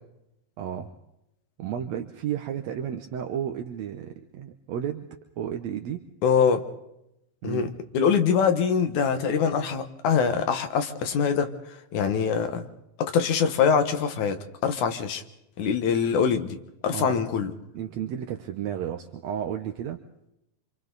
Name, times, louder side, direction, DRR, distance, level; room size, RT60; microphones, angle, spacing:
voice 1, 0.6-0.9 1.6-5.1 5.4-6.1 7.4-7.7 16.9-17.2 17.7-20.0, right 9 dB, 70° right, 5 dB, 2.1 m, -32 dB
voice 2, 6.2-6.6 7.4-7.7 7.9-11.5 11.9-12.7 13.0-15.2 15.6-16.6 16.8-17.5, left 6 dB, 80° left, 7 dB, 2.9 m, -23 dB
27.5 x 26.5 x 4.0 m, 0.84 s
omnidirectional pair, 3.4 m